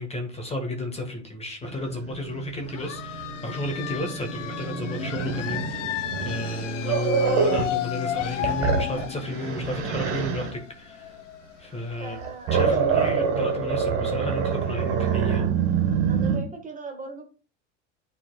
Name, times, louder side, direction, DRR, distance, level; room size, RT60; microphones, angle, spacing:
voice 1, 0.0-11.1 11.6-12.2 12.5-15.5, left 1 dB, 15° left, 1.6 m, -32 dB
Growling, 1.6-7.8 8.2-10.5 12.0-16.4, right 6 dB, 65° right, 1.9 m, -26 dB
sound 1, 2.7-12.1, left 11 dB, 90° left, 0.6 m, -33 dB
voice 2, 12.0-13.6 16.1-17.2, right 4 dB, 20° right, 1.5 m, -38 dB
10.0 x 4.3 x 2.3 m
hypercardioid pair, 95°, 36 cm